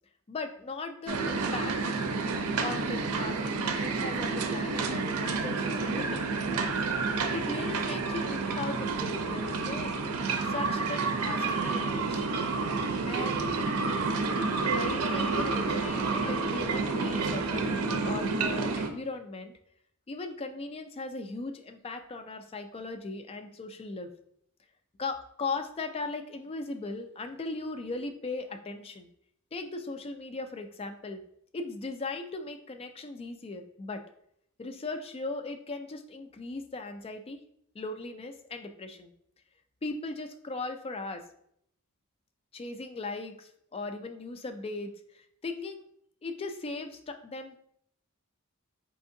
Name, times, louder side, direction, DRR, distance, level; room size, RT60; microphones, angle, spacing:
voice 1, 0.3-1.8 2.6-6.8 7.3-9.9 10.5-12.3 13.0-13.5 14.7-19.5 20.1-24.1 25.0-29.1 29.5-31.2 31.5-34.0 34.6-37.4 37.7-39.1 39.8-41.2 42.5-45.9 46.2-47.6, left 3 dB, 25° left, 7 dB, 0.4 m, -38 dB
sound 1, 1.1-18.9, right 4 dB, 85° right, 0.5 m, -29 dB
4.7 x 3.5 x 2.6 m, 0.70 s
head